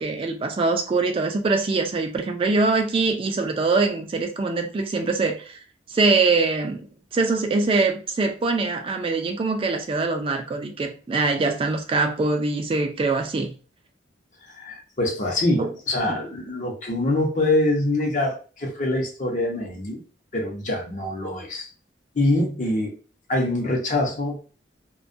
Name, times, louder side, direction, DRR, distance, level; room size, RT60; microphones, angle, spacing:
voice 1, 0.0-5.6 5.9-6.9 7.1-13.5 15.6-15.7 16.0-16.2, right 3 dB, 30° right, 0.3 m, -23 dB
voice 2, 14.5-20.0 20.3-21.7 22.1-22.9 23.3-24.4, left 1 dB, 45° left, 0.7 m, -24 dB
2.2 x 2.2 x 2.5 m
head